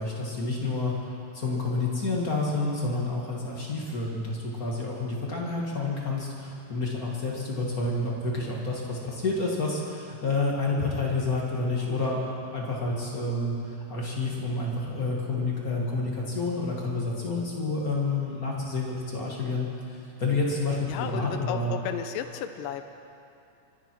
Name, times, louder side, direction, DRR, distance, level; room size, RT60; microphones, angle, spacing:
voice 1, 0.0-12.2 12.5-21.7, left 3 dB, 35° left, -3 dB, 1.7 m, -29 dB
voice 2, 20.9-22.9, left 9 dB, 90° left, 8 dB, 2.3 m, -33 dB
24.0 x 11.0 x 4.6 m, 2.6 s
omnidirectional pair, 3.9 m